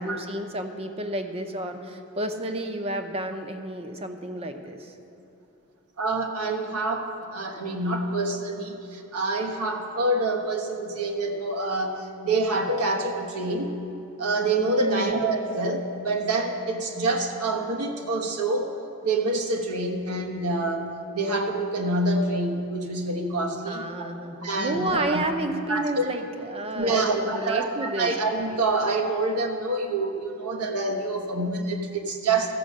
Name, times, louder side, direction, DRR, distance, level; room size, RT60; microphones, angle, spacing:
voice 1, 0.0-4.9 14.8-15.1 23.6-28.1, right 1 dB, 25° right, 6 dB, 0.7 m, -31 dB
voice 2, 6.0-13.7 14.2-18.7 19.0-20.9 21.1-24.1 24.4-25.2 25.7-26.1 26.7-32.5, right 2 dB, 90° right, 3 dB, 1.2 m, -26 dB
14.0 x 5.5 x 7.3 m, 2.9 s
head